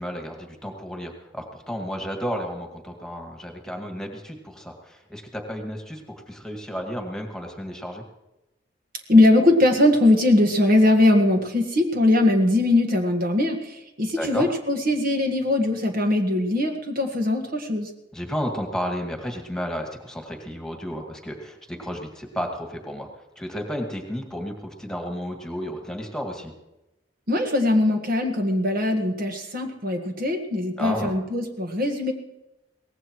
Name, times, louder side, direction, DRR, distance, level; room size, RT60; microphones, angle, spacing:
voice 1, 0.0-8.0 14.2-14.5 18.1-23.1 23.4-26.5 30.8-31.1, equal, 5° left, 2 dB, 2.1 m, -32 dB
voice 2, 9.1-17.9 27.3-32.1, left 1 dB, 50° right, 4 dB, 1.6 m, -21 dB
23.0 x 18.5 x 3.1 m, 0.94 s
head